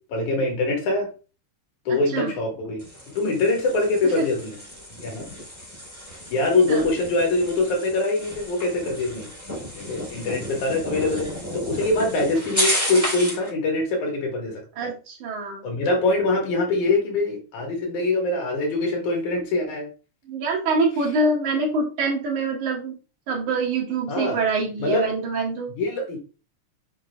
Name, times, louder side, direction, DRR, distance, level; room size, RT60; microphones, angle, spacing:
voice 1, 0.1-1.1 1.9-2.8 3.1-4.6 5.0-5.3 6.3-9.3 9.7-11.3 11.5-14.9 15.6-19.9 24.1-24.4 24.8-25.1 25.7-26.2, left 2 dB, 70° left, 3.2 m, -23 dB
voice 2, 1.9-2.3 4.2-4.3 6.7-6.8 10.3-10.4 14.8-15.7 20.3-22.9 23.3-25.7, right 3 dB, 70° right, 3.1 m, -25 dB
sound 1, 2.8-13.5, equal, 5° right, 3.9 m, -32 dB
7.8 x 6.3 x 2.4 m
omnidirectional pair, 3.7 m